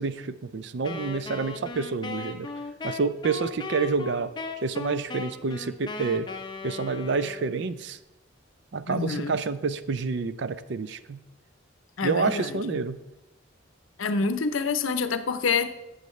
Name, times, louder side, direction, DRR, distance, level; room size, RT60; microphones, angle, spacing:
voice 1, 0.0-2.5 2.8-6.3 6.6-8.0 8.7-11.2 12.0-13.0, right 4 dB, 60° right, 14 dB, 0.4 m, -28 dB
Wind instrument woodwind instrument, 0.8-7.7, left 3 dB, 20° left, 0.6 m, -37 dB
voice 2, 8.9-9.4 12.0-12.8 14.0-15.7, left 4 dB, 85° left, 11 dB, 0.6 m, -27 dB
12.0 x 7.9 x 3.2 m, 0.97 s
head